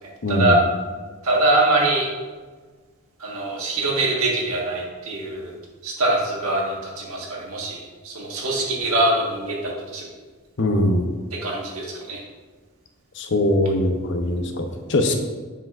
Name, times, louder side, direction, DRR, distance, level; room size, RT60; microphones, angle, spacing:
voice 1, 0.2-0.6 10.6-11.0 13.2-15.2, left 1 dB, 55° left, 5 dB, 0.7 m, -21 dB
voice 2, 1.2-2.1 3.2-5.5 5.8-7.8 8.0-10.1 11.4-12.2, right 2 dB, 80° right, -2 dB, 1.5 m, -23 dB
7.2 x 5.9 x 2.5 m, 1.4 s
head